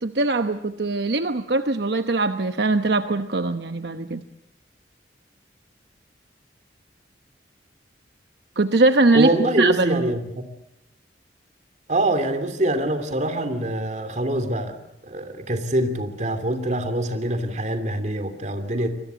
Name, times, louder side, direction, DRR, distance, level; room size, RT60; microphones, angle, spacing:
voice 1, 0.0-4.2 8.6-9.3 9.6-10.1, right 2 dB, 65° right, 8 dB, 0.9 m, -21 dB
voice 2, 9.1-10.2 11.9-14.8 15.0-18.9, right 1 dB, 40° right, 9 dB, 2.9 m, -24 dB
25.5 x 21.0 x 8.1 m, 0.84 s
head